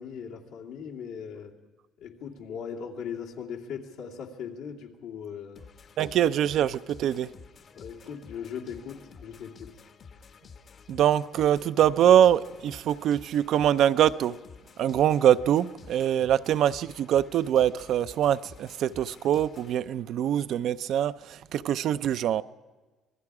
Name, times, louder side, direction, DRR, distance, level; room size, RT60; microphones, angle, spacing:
voice 1, 0.0-1.5 2.0-5.6 7.7-9.8, left 7 dB, 90° left, 2.5 m, -39 dB
sound 1, 5.5-19.8, left 5 dB, 50° left, 1.0 m, -51 dB
voice 2, 6.0-7.3 10.9-14.4 14.8-22.4, right 10 dB, 70° right, 0.5 m, -23 dB
26.5 x 20.0 x 4.9 m
cardioid pair, 100°, 0 cm